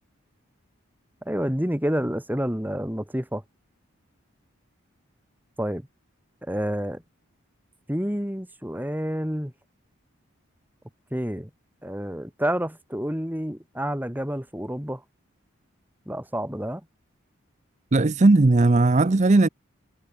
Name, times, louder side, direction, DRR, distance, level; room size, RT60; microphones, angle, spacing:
voice 1, 1.3-3.4 5.6-5.9 6.5-7.0 7.9-9.5 11.1-11.5 11.8-15.0 16.1-16.8, equal, 10° right, 2.5 m, -28 dB
voice 2, 17.9-19.5, right 2 dB, 35° right, 0.5 m, -17 dB
head